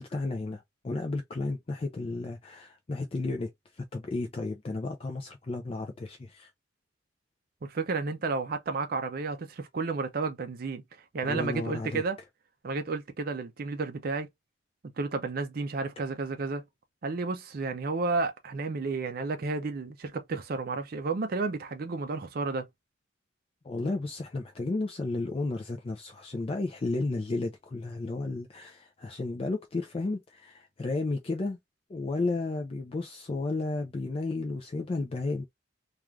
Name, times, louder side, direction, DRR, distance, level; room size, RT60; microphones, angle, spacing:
voice 1, 0.0-6.5 11.2-12.0 23.6-31.6 31.9-35.5, left 3 dB, 30° left, 0.4 m, -33 dB
voice 2, 7.6-10.8 11.1-12.2 12.6-14.3 15.0-16.6 17.0-22.7, right 4 dB, 50° right, 0.4 m, -32 dB
2.4 x 2.3 x 3.1 m
head